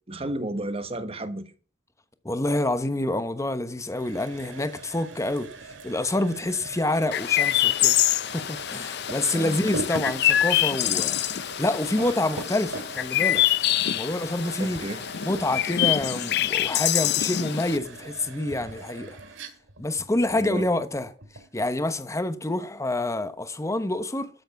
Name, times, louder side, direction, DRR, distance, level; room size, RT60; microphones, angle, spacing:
voice 1, 0.1-1.4 9.3-9.6 12.0-12.1 14.6-15.0 20.3-20.6, right 1 dB, 30° right, 1.2 m, -32 dB
voice 2, 2.2-5.5 5.8-8.0 8.3-13.4 13.9-14.8 15.2-19.2 19.8-21.1 21.5-24.3, left 1 dB, 15° left, 1.0 m, -27 dB
sound 1, 3.9-21.6, right 2 dB, 85° right, 2.3 m, -41 dB
Chirp tweet, 7.1-17.8, left 12 dB, 60° left, 0.5 m, -25 dB
13.5 x 7.1 x 5.9 m
head